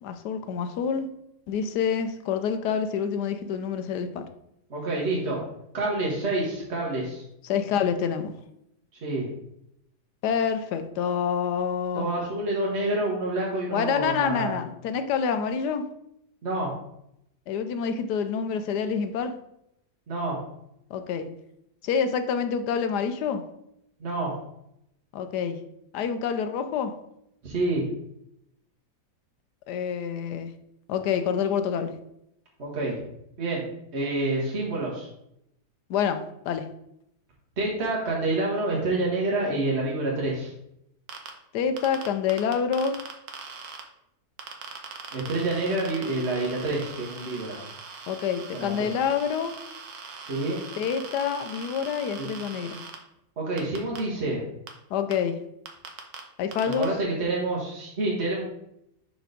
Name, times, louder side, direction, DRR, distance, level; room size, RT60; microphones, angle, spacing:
voice 1, 0.0-1.1 1.5-4.2 7.4-8.3 10.2-12.1 13.7-15.8 17.5-19.3 20.9-21.3 21.8-23.4 25.1-25.6 25.9-26.9 29.7-30.5 30.9-31.9 35.9-36.7 41.5-43.0 48.1-49.5 50.8-52.8 54.9-55.4 56.4-56.9, left 7 dB, 85° left, 9 dB, 1.2 m, -27 dB
voice 2, 4.7-5.4 5.7-7.2 8.9-9.3 11.9-14.6 16.4-16.7 20.1-20.4 24.0-24.4 27.4-27.8 32.6-33.0 33.4-33.6 33.9-35.1 37.6-40.5 45.1-47.6 48.5-48.9 50.2-50.6 52.2-52.3 53.4-54.4 56.7-58.4, right 2 dB, 45° right, -4 dB, 1.5 m, -28 dB
sound 1, 41.1-41.3 41.8-43.8 44.4-53.0 53.6-54.0 54.7-54.8 55.1-55.2 55.7-56.2 56.5-56.8, right 5 dB, 70° right, 1.4 m, -41 dB
5.1 x 4.4 x 5.1 m, 0.79 s
omnidirectional pair, 1.7 m